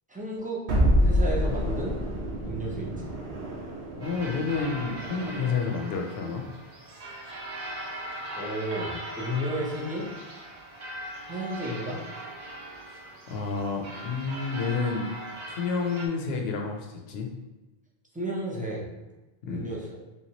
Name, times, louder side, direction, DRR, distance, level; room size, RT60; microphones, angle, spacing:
voice 1, 0.1-0.6 1.0-2.0 2.4-3.1 8.3-10.1 11.3-12.0 18.1-18.9 19.5-20.0, right 1 dB, 10° right, -3 dB, 0.4 m, -32 dB
sound 1, 0.7-5.8, equal, 75° right, 0.9 m, -27 dB
voice 2, 4.0-6.4 12.9-13.0 13.3-15.1 15.5-17.3 19.4-19.7, left 5 dB, 75° left, 2 dB, 0.8 m, -30 dB
sound 2, 4.0-16.1, right 1 dB, 50° right, 0.6 m, -40 dB
3.4 x 2.9 x 2.8 m, 1.1 s
omnidirectional pair, 1.1 m